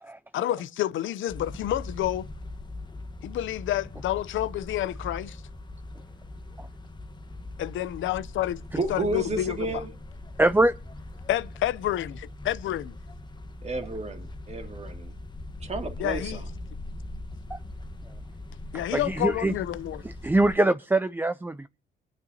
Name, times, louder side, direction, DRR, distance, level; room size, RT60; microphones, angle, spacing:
voice 1, 0.3-2.3 3.2-5.4 7.6-8.6 8.9-9.6 11.3-12.9 16.0-16.4 18.7-20.0, left 13 dB, 75° left, 0.7 m, -29 dB
sound 1, 1.3-20.6, left 2 dB, 20° left, 1.2 m, -41 dB
voice 2, 8.8-9.9 13.6-15.1 15.6-16.5, right 2 dB, 35° right, 2.5 m, -32 dB
voice 3, 10.4-10.7 17.5-17.6 18.9-19.5 20.2-21.7, right 2 dB, 10° right, 0.5 m, -23 dB
23.5 x 9.4 x 2.8 m
cardioid pair, 90°, 20 cm